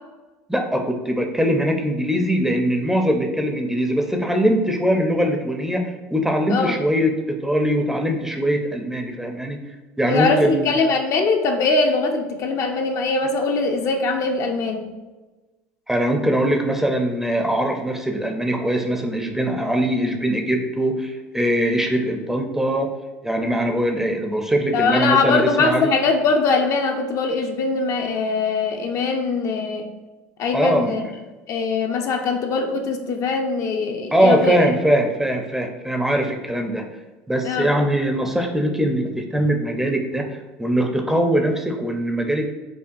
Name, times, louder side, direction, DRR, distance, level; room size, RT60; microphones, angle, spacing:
voice 1, 0.5-9.6 10.0-10.7 15.9-22.9 23.2-25.9 30.5-31.1 34.1-36.8 37.3-40.3 40.6-42.5, equal, 5° right, 3 dB, 0.5 m, -21 dB
voice 2, 10.1-14.8 24.7-29.9 30.4-31.0 31.5-34.6 37.4-37.7, left 4 dB, 50° left, 4 dB, 0.5 m, -21 dB
5.3 x 2.2 x 2.5 m, 1.2 s
supercardioid pair, 95°, 7 cm